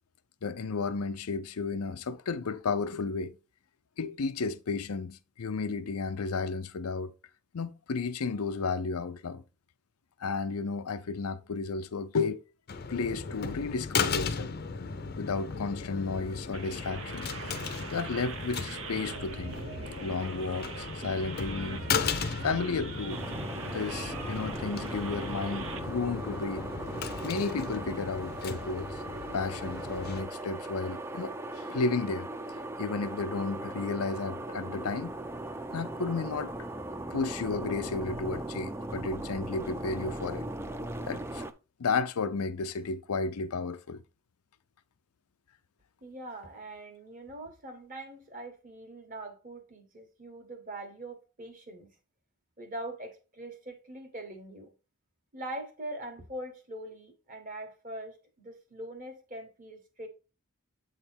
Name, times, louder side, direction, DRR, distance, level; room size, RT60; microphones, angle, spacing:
voice 1, 0.4-3.3 4.0-7.1 7.5-9.4 10.2-12.4 12.9-14.5 15.2-17.5 17.9-19.5 20.0-21.9 22.4-23.2 23.7-26.7 27.2-29.0 29.3-32.3 32.8-35.1 35.7-36.5 37.1-40.5 41.1-41.4 41.8-44.0, left 4 dB, 85° left, 0.6 m, -33 dB
sound 1, 12.7-30.2, left 5 dB, 45° left, 0.6 m, -36 dB
sound 2, 16.5-25.8, right 4 dB, 60° right, 0.7 m, -42 dB
sound 3, 23.1-41.5, right 1 dB, 10° right, 0.3 m, -39 dB
voice 2, 46.0-51.9 52.6-54.7 55.3-60.1, right 1 dB, 40° right, 1.5 m, -42 dB
8.0 x 3.3 x 4.4 m
head